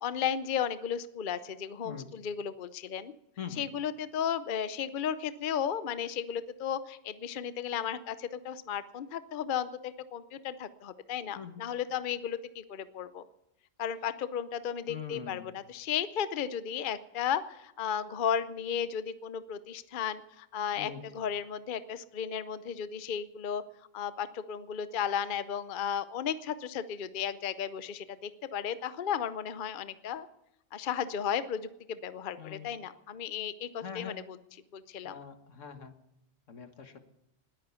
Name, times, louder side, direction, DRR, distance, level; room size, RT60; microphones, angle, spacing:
voice 1, 0.0-3.1 3.6-13.2 13.8-23.6 23.9-30.3 30.7-34.4 34.7-35.1, left 8 dB, 50° left, 14 dB, 0.8 m, -34 dB
voice 2, 11.3-11.7 14.9-15.5 20.8-21.0 32.4-32.7 33.8-34.2 35.0-35.9 36.5-37.1, left 7 dB, 85° left, 8 dB, 1.8 m, -43 dB
20.0 x 9.2 x 6.9 m, 0.86 s
omnidirectional pair, 1.3 m